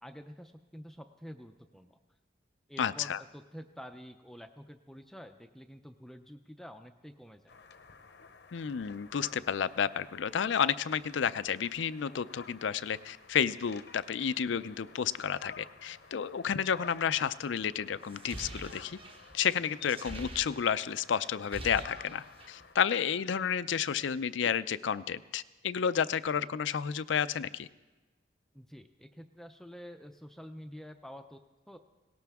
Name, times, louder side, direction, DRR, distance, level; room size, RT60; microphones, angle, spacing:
voice 1, 0.0-2.0 2.7-7.6 28.5-31.4 31.7-31.8, equal, ahead, 6 dB, 0.4 m, -48 dB
voice 2, 2.8-3.2 8.5-19.0 19.3-27.7, left 7 dB, 85° left, 16 dB, 0.4 m, -31 dB
sound 1, 7.5-22.7, left 5 dB, 65° left, 0.8 m, -52 dB
sound 2, 18.0-21.0 21.3-22.6, right 1 dB, 30° right, 1.0 m, -45 dB
19.0 x 18.0 x 3.5 m, 1.2 s
head